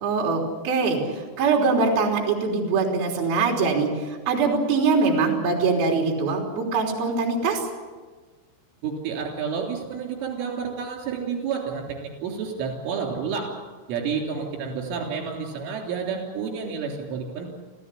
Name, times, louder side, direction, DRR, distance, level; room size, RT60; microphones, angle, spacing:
voice 1, 0.0-7.6, right 4 dB, 50° right, 0 dB, 4.9 m, -23 dB
voice 2, 8.8-13.5 13.9-17.5, right 6 dB, 75° right, 2 dB, 6.1 m, -30 dB
27.5 x 15.5 x 8.5 m, 1.4 s
omnidirectional pair, 5.7 m